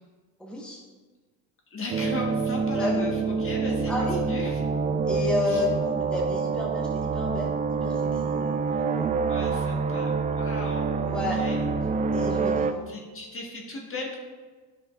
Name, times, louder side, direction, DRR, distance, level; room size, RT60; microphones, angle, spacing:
voice 1, 0.4-0.8 2.8-3.1 3.9-4.3 5.1-9.2 11.0-11.4 12.1-12.9, left 2 dB, ahead, -3 dB, 1.3 m, -31 dB
voice 2, 1.7-4.5 5.5-5.6 9.3-11.6 12.9-14.2, left 2 dB, 30° left, -1 dB, 1.5 m, -36 dB
Bowed guitar, 1.9-12.7, right 5 dB, 20° right, 0.3 m, -27 dB
9.7 x 5.6 x 2.5 m, 1.4 s
supercardioid pair, 95°, 40 cm